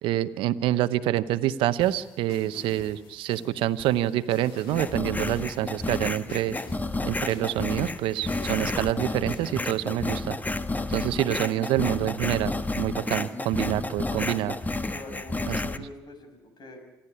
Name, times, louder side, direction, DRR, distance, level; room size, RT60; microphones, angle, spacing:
voice 1, 0.0-6.6 7.0-10.4 10.9-14.5 15.5-15.6, right 13 dB, 80° right, 14 dB, 0.8 m, -27 dB
sound 1, 1.8-9.8, left 5 dB, 80° left, 2.4 m, -48 dB
sound 2, 4.7-15.8, left 2 dB, 20° left, 1.3 m, -31 dB
voice 2, 14.1-14.5 14.9-16.8, left 2 dB, 55° left, 5 dB, 6.2 m, -44 dB
26.5 x 11.5 x 9.9 m, 1.0 s
supercardioid pair, 55°, 9 cm